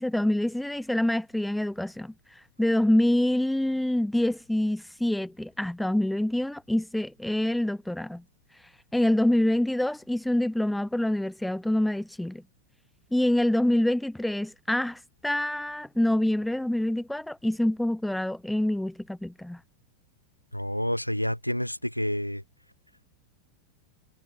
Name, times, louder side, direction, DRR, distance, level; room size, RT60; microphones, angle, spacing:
voice 1, 0.0-8.2 8.9-12.4 13.1-19.6, left 1 dB, 5° left, 6.7 m, -26 dB
voice 2, 20.5-22.4, equal, 90° left, 3.3 m, -29 dB
figure-of-eight pair, 90°, 0 cm